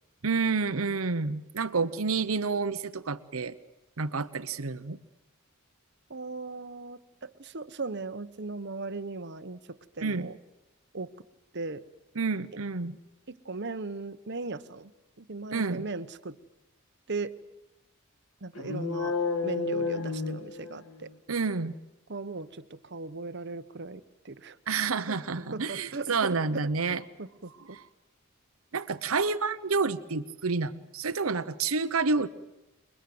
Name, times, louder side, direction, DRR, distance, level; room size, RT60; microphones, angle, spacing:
voice 1, 0.2-3.6 4.0-5.0 10.0-10.3 12.1-13.0 15.5-15.9 21.3-21.7 24.7-27.0 27.6-27.8 28.7-32.3, right 4 dB, 80° right, 11 dB, 1.0 m, -29 dB
voice 2, 6.1-10.4 10.9-11.1 11.5-11.8 12.5-12.6 13.3-14.9 15.2-16.4 17.1-17.3 18.4-19.2 19.4-21.1 22.1-24.6 25.1-26.4 26.9-27.5, right 3 dB, 55° right, 12 dB, 1.1 m, -38 dB
sound 1, 18.6-21.1, left 4 dB, 80° left, 2.2 m, -31 dB
28.5 x 22.5 x 7.9 m, 0.95 s
head